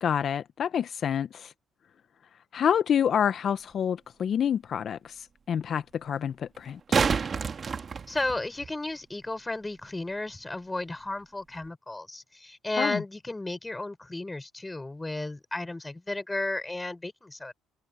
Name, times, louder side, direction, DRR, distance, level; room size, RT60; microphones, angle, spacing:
voice 1, 0.0-1.5 2.5-6.8 12.8-13.0, left 8 dB, 55° left, 0.7 m, -28 dB
sound 1, 3.7-3.8 6.5-8.7 11.6-11.7, right 5 dB, 40° right, 1.7 m, -28 dB
voice 2, 8.1-17.5, left 2 dB, 15° left, 5.1 m, -33 dB
supercardioid pair, 80°, 0 cm